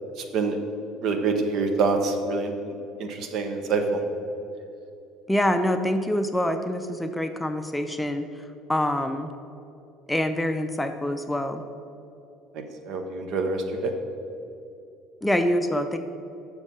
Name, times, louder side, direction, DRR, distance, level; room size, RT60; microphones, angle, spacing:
voice 1, 1.0-2.5 3.0-4.0 12.9-13.9, right 4 dB, 55° right, 5 dB, 0.9 m, -25 dB
voice 2, 5.3-8.3 8.7-9.3 10.1-11.6 15.2-16.0, left 1 dB, 5° left, 7 dB, 0.5 m, -25 dB
7.1 x 4.6 x 6.7 m, 2.7 s
figure-of-eight pair, 60°, 0 cm